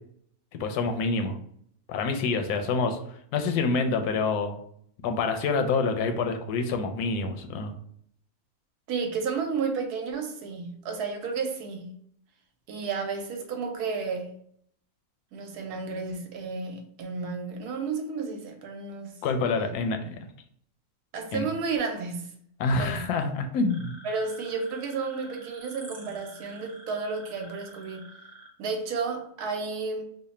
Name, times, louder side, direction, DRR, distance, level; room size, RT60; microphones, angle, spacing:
voice 1, 0.6-1.4 1.9-3.0 3.3-4.6 5.0-7.7 19.2-20.2 21.3-21.4 22.6-23.9, left 4 dB, 85° left, 1.1 m, -27 dB
voice 2, 8.9-11.9 12.7-14.3 15.3-19.1 21.1-22.3 22.8-23.1 24.0-28.1 28.6-30.0, right 4 dB, 80° right, 1.2 m, -32 dB
sound 1, 23.7-28.5, right 1 dB, 35° right, 0.9 m, -49 dB
3.2 x 2.1 x 4.1 m
omnidirectional pair, 1.6 m